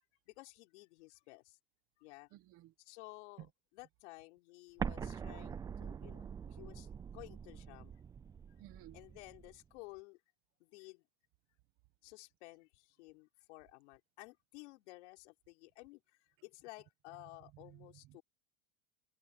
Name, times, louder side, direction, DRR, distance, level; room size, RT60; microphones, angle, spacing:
voice 1, 0.3-1.6 2.0-2.3 2.8-7.9 8.9-10.2 10.6-11.0 12.0-18.2, left 24 dB, 70° left, 5.5 m, -55 dB
voice 2, 2.3-2.7 8.6-9.0 17.6-18.2, right 16 dB, 40° right, 1.2 m, -57 dB
Explosion, 4.8-9.6, right 7 dB, 10° right, 0.4 m, -44 dB
supercardioid pair, 170°, 36 cm